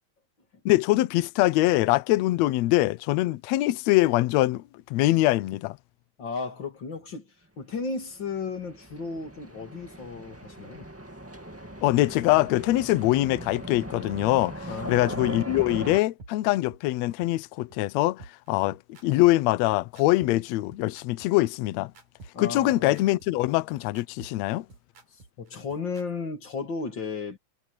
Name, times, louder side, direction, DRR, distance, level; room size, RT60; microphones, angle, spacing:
voice 1, 0.7-4.6 4.9-5.8 11.8-21.9 22.4-24.7, left 17 dB, 75° left, 1.7 m, -23 dB
voice 2, 6.2-10.9 14.7-15.3 22.3-23.0 25.4-27.4, left 4 dB, 35° left, 2.9 m, -34 dB
sound 1, 8.1-16.0, right 1 dB, 5° right, 1.3 m, -39 dB
sound 2, 14.2-14.3 14.7-14.8 15.2-15.3 15.7-15.8 16.2-16.3 16.7-16.8 17.2-17.3 17.7-17.8 18.2-26.1, right 3 dB, 70° right, 5.4 m, -49 dB
omnidirectional pair, 3.6 m